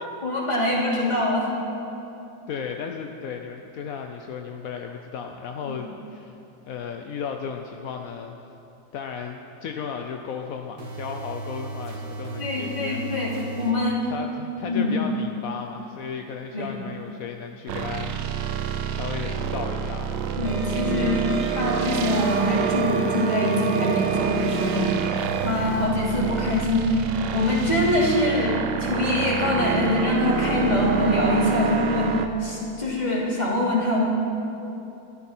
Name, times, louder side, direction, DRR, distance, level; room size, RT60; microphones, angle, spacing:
voice 1, 0.2-1.5 5.6-5.8 12.4-14.0 14.7-15.0 16.5-16.8 20.4-21.2 21.5-24.9 25.4-27.0 27.3-32.1 32.4-34.0, left 1 dB, 20° left, -5 dB, 2.8 m, -24 dB
voice 2, 2.5-6.4 6.7-8.4 8.9-13.0 14.1-20.3 31.6-31.7, left 6 dB, 65° left, 4 dB, 0.9 m, -35 dB
sound 1, 9.3-9.4 10.8-13.9 25.2-25.9, right 3 dB, 55° right, 2.2 m, -36 dB
sound 2, 17.7-32.3, right 7 dB, 70° right, 1.4 m, -27 dB
sound 3, 20.4-25.5, right 7 dB, 25° right, 2.0 m, -32 dB
21.5 x 13.0 x 4.3 m, 2.9 s
omnidirectional pair, 2.1 m